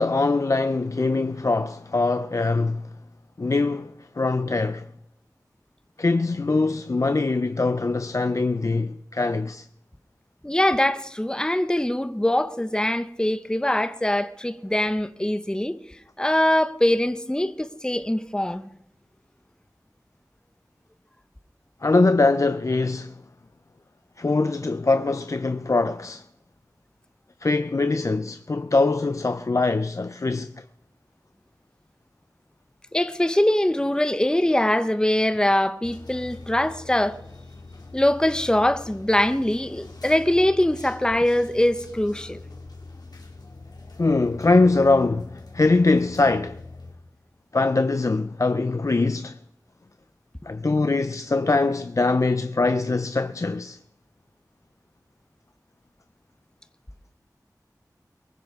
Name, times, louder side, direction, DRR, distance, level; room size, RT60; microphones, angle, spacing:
voice 1, 0.0-2.9 3.4-4.9 6.0-9.7 21.8-23.1 24.2-26.2 27.4-30.6 44.0-46.6 47.5-49.4 50.5-53.8, left 3 dB, 50° left, 0.5 m, -22 dB
voice 2, 10.4-15.8 16.2-18.7 32.9-37.2 37.9-42.4, left 1 dB, 10° left, 0.7 m, -22 dB
sound 1, 35.8-46.9, left 3 dB, 80° left, 2.2 m, -43 dB
22.5 x 14.0 x 3.6 m
wide cardioid pair, 60°, 7 cm